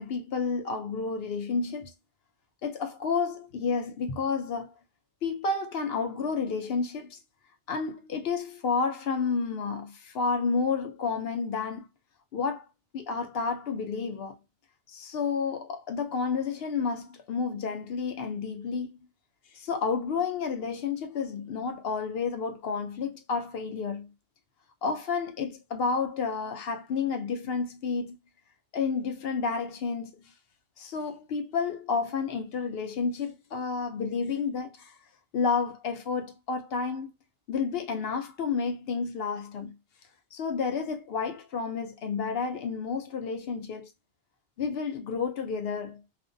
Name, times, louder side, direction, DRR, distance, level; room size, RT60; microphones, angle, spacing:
voice 1, 0.0-1.9 2.6-4.7 5.2-7.2 7.7-11.9 12.3-12.7 12.9-14.4 14.9-19.0 19.5-24.1 24.8-28.2 28.7-30.2 30.8-35.0 35.3-37.1 37.5-39.8 40.3-43.9 44.6-46.0, left 5 dB, 65° left, 0.8 m, -30 dB
2.5 x 2.1 x 2.5 m
omnidirectional pair, 1.1 m